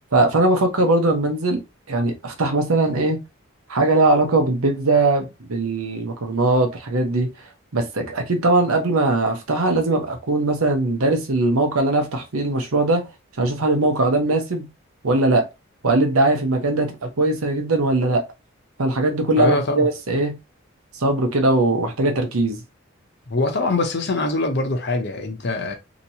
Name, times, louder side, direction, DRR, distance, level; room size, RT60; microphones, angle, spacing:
voice 1, 0.1-3.2 3.7-7.3 7.7-13.0 13.4-14.6 15.0-15.5 15.8-18.2 18.8-20.3 20.9-22.6, right 2 dB, 90° right, 0.9 m, -20 dB
voice 2, 19.3-19.9 23.3-25.7, left 2 dB, 50° left, 0.7 m, -23 dB
2.9 x 2.8 x 2.8 m
head